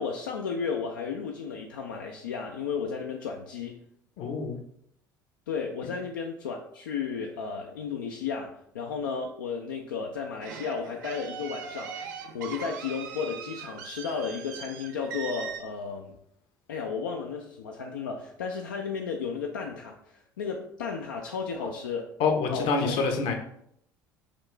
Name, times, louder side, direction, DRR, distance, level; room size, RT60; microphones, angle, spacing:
voice 1, 0.0-3.8 5.5-12.1 12.3-16.2 16.7-22.1 22.5-23.0, left 5 dB, 75° left, 1 dB, 0.4 m, -33 dB
voice 2, 4.2-4.5 22.2-23.3, left 4 dB, 55° left, 5 dB, 0.8 m, -26 dB
sound 1, 10.4-15.6, right 7 dB, 65° right, 0.5 m, -40 dB
5.8 x 2.4 x 3.2 m, 0.72 s
figure-of-eight pair, 65°, 11 cm